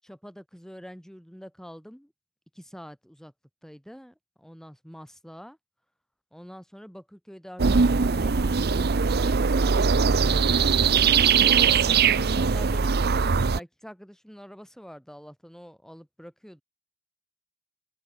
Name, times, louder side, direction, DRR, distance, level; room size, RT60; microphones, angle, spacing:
voice 1, 0.0-2.1 2.5-3.3 3.6-5.6 6.3-16.6, equal, 5° left, 6.6 m, -46 dB
sound 1, 7.6-13.6, right 5 dB, 55° right, 0.7 m, -21 dB
open air
head